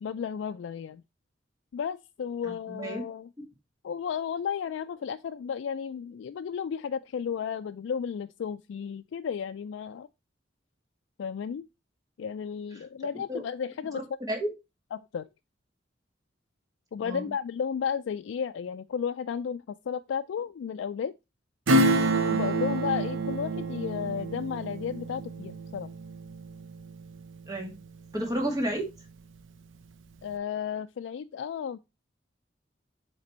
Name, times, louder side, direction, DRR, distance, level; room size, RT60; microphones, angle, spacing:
voice 1, 0.0-1.0 1.7-3.3 3.8-10.1 11.2-11.7 12.2-14.0 14.9-15.3 16.9-21.1 22.2-25.9 30.2-31.8, left 7 dB, 75° left, 0.3 m, -33 dB
voice 2, 2.4-3.0 13.3-13.4 13.9-14.5 17.0-17.3 27.5-27.7 28.1-28.9, right 1 dB, 20° right, 2.0 m, -31 dB
Acoustic guitar / Strum, 21.7-27.9 28.2-28.3, right 2 dB, 90° right, 0.7 m, -28 dB
7.8 x 3.4 x 4.2 m
head